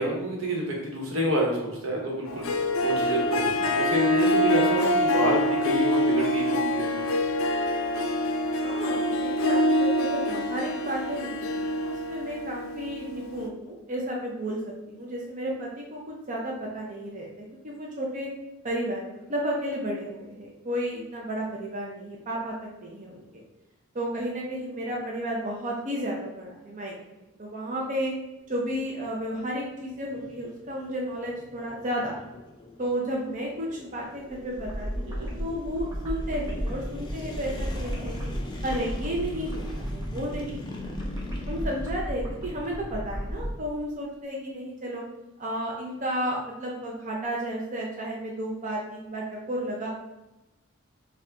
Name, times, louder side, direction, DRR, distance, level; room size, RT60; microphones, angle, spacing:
voice 1, 0.0-7.1 35.0-35.5, right 1 dB, 80° right, -2 dB, 1.2 m, -29 dB
Harp, 2.3-13.5, left 1 dB, 80° left, 0.4 m, -25 dB
voice 2, 8.6-18.3 18.6-22.5 22.8-23.4 23.9-26.9 27.4-28.1 28.5-32.2 32.8-38.1 38.6-40.6 40.8-41.1 41.5-45.0 45.4-49.9, equal, 40° right, -3 dB, 0.6 m, -32 dB
sound 1, 28.4-43.6, left 1 dB, 20° left, 0.5 m, -42 dB
sound 2, 34.4-43.5, equal, 15° right, 0.9 m, -34 dB
4.6 x 2.4 x 3.6 m, 1.0 s
head